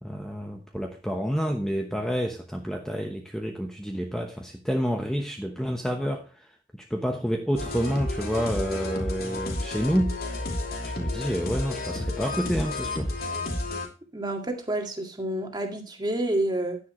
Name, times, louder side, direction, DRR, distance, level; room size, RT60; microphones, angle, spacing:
voice 1, 0.0-6.5 6.8-10.2 10.8-13.1, equal, 5° left, 1.0 m, -29 dB
sound 1, 7.6-13.9, left 2 dB, 55° left, 3.0 m, -31 dB
voice 2, 14.1-16.8, right 1 dB, 25° right, 2.0 m, -29 dB
10.5 x 10.0 x 3.1 m
head